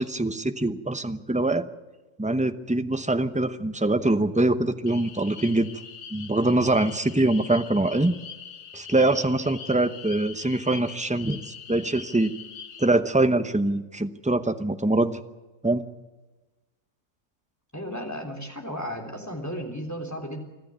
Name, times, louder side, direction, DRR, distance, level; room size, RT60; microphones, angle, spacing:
voice 1, 0.0-1.6 2.2-5.7 6.1-8.1 8.7-12.3 12.8-15.2 15.6-15.8, right 2 dB, 5° right, 9 dB, 0.6 m, -24 dB
sound 1, 4.9-12.9, left 7 dB, 60° left, 1.5 m, -43 dB
voice 2, 17.7-20.4, equal, 10° left, 4 dB, 3.4 m, -34 dB
25.5 x 13.5 x 8.8 m, 1.2 s
omnidirectional pair, 1.6 m